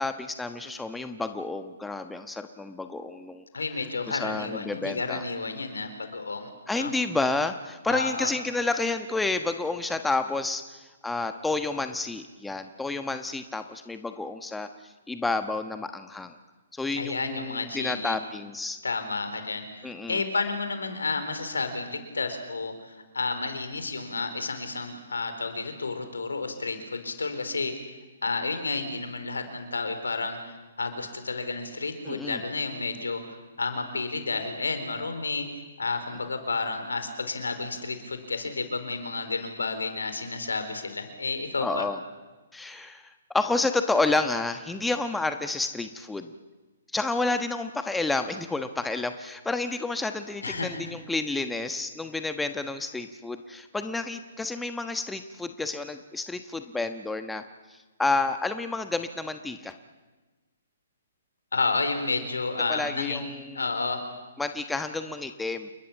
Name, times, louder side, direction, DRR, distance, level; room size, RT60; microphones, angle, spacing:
voice 1, 0.0-3.4 4.1-5.2 6.7-16.4 16.7-18.8 19.8-20.2 32.0-32.4 41.6-42.0 42.5-46.3 46.9-57.4 57.7-59.7 62.7-63.6 64.4-65.7, left 3 dB, 5° left, 8 dB, 1.2 m, -30 dB
voice 2, 3.5-6.9 7.9-8.3 17.0-18.2 18.8-27.7 28.2-35.5 35.8-41.9 50.4-50.9 61.5-63.3 63.5-64.0, left 3 dB, 80° left, 8 dB, 4.1 m, -31 dB
28.5 x 21.0 x 7.4 m, 1.2 s
figure-of-eight pair, 125°, 0 cm